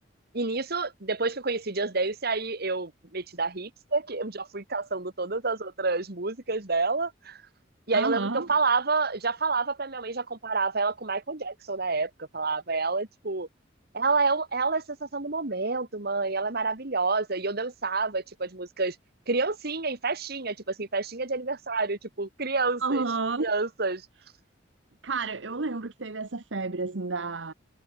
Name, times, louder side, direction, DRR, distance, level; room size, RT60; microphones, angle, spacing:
voice 1, 0.3-7.4 7.9-13.5 13.9-19.0 19.3-23.0 23.4-24.1, right 3 dB, 55° right, 2.2 m, -28 dB
voice 2, 7.9-8.5 22.8-23.5 25.0-27.5, right 3 dB, 75° right, 1.1 m, -30 dB
head